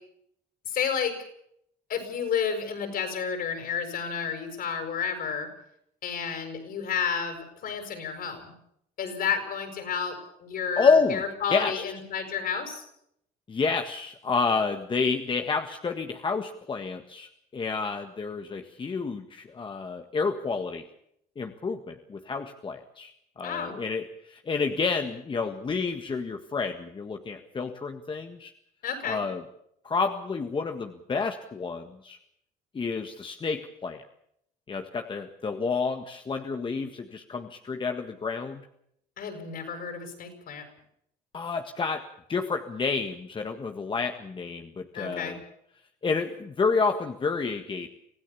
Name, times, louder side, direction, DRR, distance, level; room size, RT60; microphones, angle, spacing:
voice 1, 0.7-1.2 1.9-5.5 6.0-8.5 9.0-12.9 23.4-23.8 28.8-29.2 39.2-40.6 44.9-45.4, left 6 dB, 60° left, 6 dB, 6.9 m, -31 dB
voice 2, 10.8-11.2 11.5-11.8 13.5-20.8 21.3-28.5 29.0-29.4 29.8-32.2 32.7-34.0 34.7-38.7 41.3-42.0 42.3-45.4 46.0-47.9, left 4 dB, 30° left, 6 dB, 1.7 m, -29 dB
26.0 x 16.0 x 7.1 m, 0.72 s
cardioid pair, 110°, 17 cm